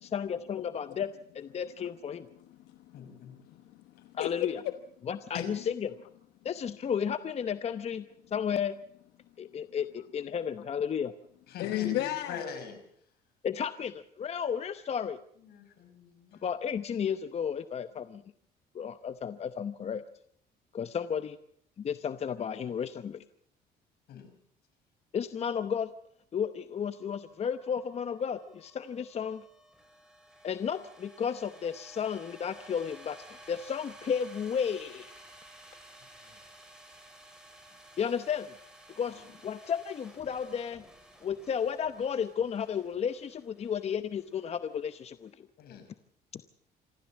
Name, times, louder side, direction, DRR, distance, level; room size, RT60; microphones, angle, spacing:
voice 1, 0.0-2.3 4.1-4.6 5.1-5.9 6.4-8.1 8.3-8.7 9.4-11.1 13.4-15.2 16.4-18.2 18.7-20.0 20.7-21.4 21.8-23.2 25.1-25.9 26.3-29.4 30.4-35.1 38.0-38.5 38.9-40.8 41.2-45.5 46.3-46.4, left 7 dB, 40° left, 0.8 m, -33 dB
voice 2, 2.4-4.7 11.6-12.4, left 15 dB, 90° left, 1.1 m, -35 dB
voice 3, 2.9-3.3 5.3-5.7 11.5-12.7 15.5-16.4 24.1-24.3 36.2-36.4 39.1-39.2 45.6-45.9, left 6 dB, 70° left, 5.7 m, -42 dB
sound 1, 26.9-45.3, right 1 dB, 5° right, 5.4 m, -54 dB
27.0 x 14.0 x 7.3 m
cardioid pair, 110°, 17 cm